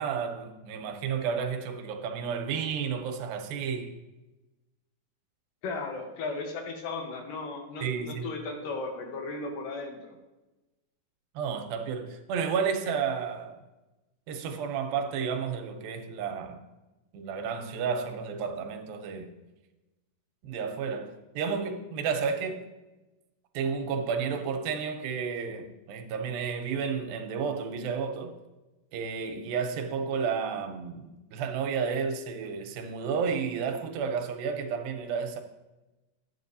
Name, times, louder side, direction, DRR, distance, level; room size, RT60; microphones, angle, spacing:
voice 1, 0.0-4.0 7.8-8.3 11.4-13.6 14.3-16.6 17.1-19.3 20.4-22.6 23.5-28.3 28.9-35.4, right 6 dB, 85° right, 2.5 m, -32 dB
voice 2, 5.6-10.2, left 3 dB, 75° left, 2.6 m, -36 dB
9.2 x 8.3 x 2.7 m
omnidirectional pair, 4.1 m